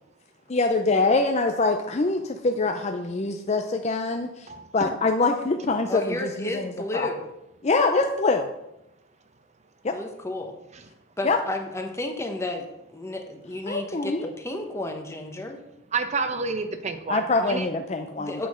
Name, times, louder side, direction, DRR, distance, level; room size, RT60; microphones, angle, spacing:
voice 1, 0.5-4.5 4.7-7.1 7.6-8.5 9.8-9.9 11.2-11.4 13.7-14.3 17.1-18.5, left 3 dB, 30° left, 5 dB, 0.5 m, -24 dB
voice 2, 4.5-4.9 15.9-17.7, right 4 dB, 35° right, 8 dB, 0.8 m, -29 dB
voice 3, 5.9-7.3 9.9-10.5 11.2-15.6 18.2-18.5, left 1 dB, 15° left, 3 dB, 1.1 m, -32 dB
8.6 x 5.6 x 6.3 m, 0.91 s
head